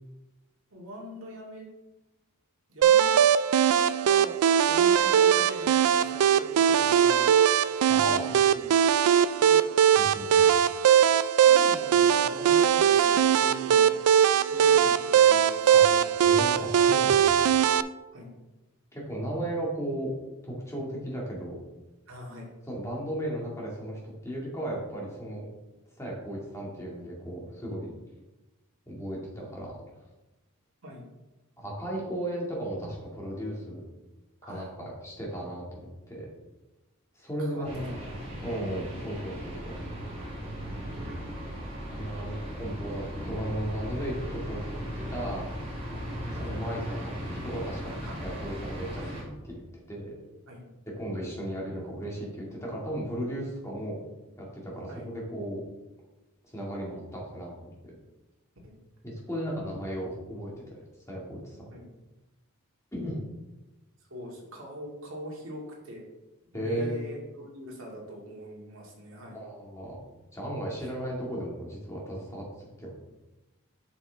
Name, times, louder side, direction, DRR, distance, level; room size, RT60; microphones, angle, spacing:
voice 1, 0.7-1.7 2.7-3.2 3.7-7.3 7.9-8.7 9.4-9.6 11.4-14.0 14.5-16.1 18.1-18.3 22.1-22.5 30.8-31.0 34.4-34.7 37.4-37.9 46.3-46.6 48.1-48.4 50.5-50.7 54.9-55.1 58.6-58.8 61.7-61.9 64.1-66.0 66.5-69.4 70.8-70.9, equal, 60° right, -2 dB, 2.2 m, -43 dB
sound 1, 2.8-17.8, right 8 dB, 90° right, 0.3 m, -21 dB
voice 2, 7.9-8.3 10.0-10.5 15.7-15.8 16.3-17.4 18.9-20.1 20.4-21.6 22.6-25.5 26.0-27.9 28.9-29.8 31.6-33.8 34.4-36.3 37.2-38.0 38.4-39.7 41.9-45.4 46.4-47.9 48.2-50.1 51.0-54.0 54.4-55.6 56.5-57.7 59.0-61.7 62.9-63.2 66.5-67.0 69.3-70.0 70.3-72.9, right 1 dB, 15° left, -3 dB, 2.0 m, -35 dB
sound 2, 37.6-49.2, equal, 30° right, 2.6 m, -37 dB
8.0 x 6.3 x 3.4 m, 1.1 s
head